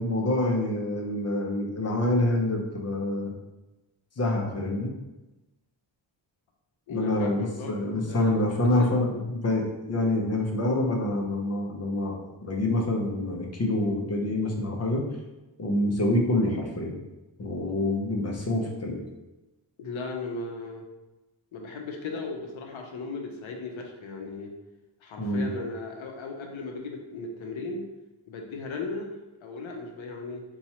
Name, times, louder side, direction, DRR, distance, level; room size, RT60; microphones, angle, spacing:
voice 1, 0.0-3.3 4.2-4.9 6.9-15.0 15.6-17.0 17.4-19.0 25.2-25.5, left 1 dB, 35° left, 0 dB, 0.6 m, -26 dB
voice 2, 6.9-7.7 8.1-8.3 8.8-8.9 19.8-20.8 21.5-24.5 25.0-27.9 28.3-30.4, left 3 dB, 85° left, 2 dB, 0.7 m, -36 dB
2.8 x 2.3 x 4.1 m, 1.0 s
wide cardioid pair, 140°, 46 cm